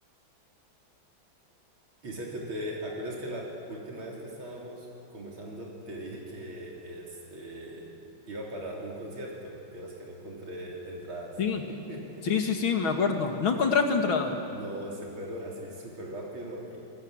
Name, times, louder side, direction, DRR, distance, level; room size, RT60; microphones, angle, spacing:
voice 1, 2.0-7.9 8.3-11.4 11.7-12.2 14.5-16.8, right 1 dB, 85° right, -3 dB, 4.3 m, -39 dB
voice 2, 12.2-14.3, left 5 dB, 80° left, 4 dB, 2.9 m, -25 dB
27.0 x 20.0 x 8.9 m, 2.6 s
omnidirectional pair, 2.2 m